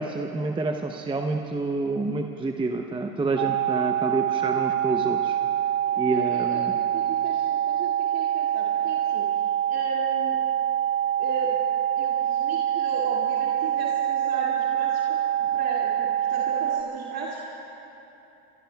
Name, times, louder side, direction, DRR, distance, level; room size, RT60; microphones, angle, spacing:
voice 1, 0.0-5.4 6.0-6.8, right 3 dB, 10° right, 4 dB, 0.7 m, -28 dB
sound 1, 3.4-16.8, right 11 dB, 80° right, 0.7 m, -25 dB
voice 2, 5.9-6.6 6.9-9.3 9.7-10.4 11.2-11.6 12.0-17.5, right 3 dB, 45° right, -4 dB, 2.5 m, -36 dB
26.0 x 23.0 x 2.3 m, 3.0 s
hypercardioid pair, 100°, 48 cm